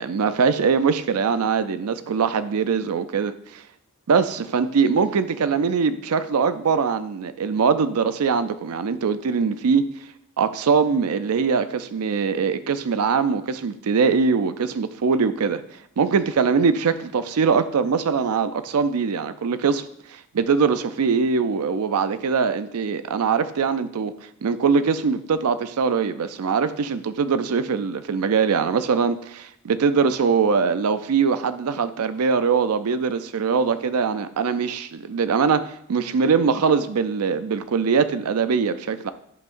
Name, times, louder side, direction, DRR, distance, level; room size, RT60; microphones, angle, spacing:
voice 1, 0.0-3.6 4.1-9.9 10.4-15.6 16.0-24.1 24.4-39.1, right 5 dB, 80° right, 11 dB, 0.5 m, -22 dB
11.0 x 5.6 x 2.6 m, 0.70 s
head